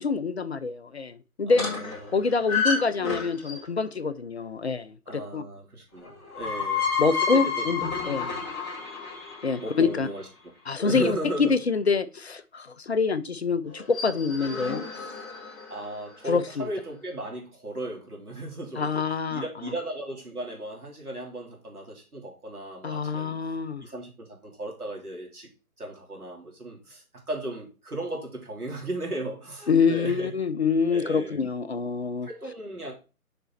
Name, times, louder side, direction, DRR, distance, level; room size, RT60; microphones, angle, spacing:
voice 1, 0.0-1.6 2.1-5.4 7.0-8.3 9.4-10.1 10.7-15.2 16.3-16.7 18.8-19.7 22.8-23.8 29.7-32.3, left 5 dB, 45° left, 0.6 m, -26 dB
sound 1, 1.5-3.8 6.0-10.1 13.7-15.9, left 5 dB, 20° left, 2.3 m, -30 dB
voice 2, 1.5-2.2 5.1-7.0 7.3-7.7 8.2-8.4 9.6-10.3 10.8-11.6 15.7-19.0 19.3-23.3 23.8-25.5 25.8-30.3 30.9-31.4 31.7-31.8 32.2-32.9, right 1 dB, 80° right, 3.7 m, -36 dB
6.7 x 5.2 x 4.1 m
figure-of-eight pair, 140°, 44 cm